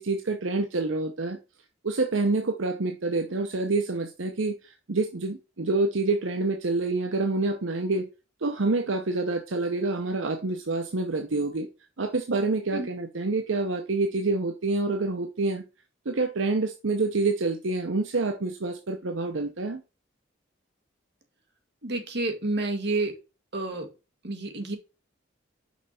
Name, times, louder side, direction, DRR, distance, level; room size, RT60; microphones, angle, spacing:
voice 1, 0.0-1.4 1.8-8.1 8.4-11.7 12.0-15.6 16.1-19.8, right 3 dB, 80° right, 0.8 m, -27 dB
voice 2, 21.8-23.1 23.5-23.9 24.2-24.8, right 2 dB, 60° right, 1.7 m, -29 dB
5.9 x 5.4 x 4.2 m
head